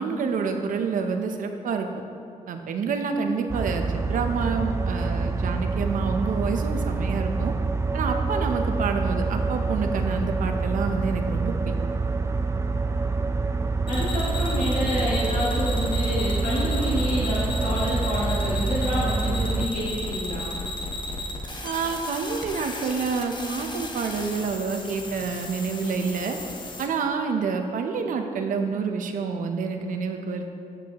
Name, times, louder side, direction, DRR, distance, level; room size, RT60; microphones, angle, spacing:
voice 1, 0.0-1.9 2.5-7.5 7.9-11.7 21.6-26.4 26.8-30.5, right 5 dB, 80° right, 5 dB, 0.6 m, -28 dB
sound 1, 3.5-19.7, right 3 dB, 20° right, 0.4 m, -26 dB
voice 2, 13.9-20.5, left 1 dB, 70° left, -7 dB, 1.4 m, -28 dB
sound 2, 13.9-26.9, left 2 dB, 35° left, 0.9 m, -34 dB
9.0 x 6.1 x 2.9 m, 2.6 s
cardioid pair, 70°, 14 cm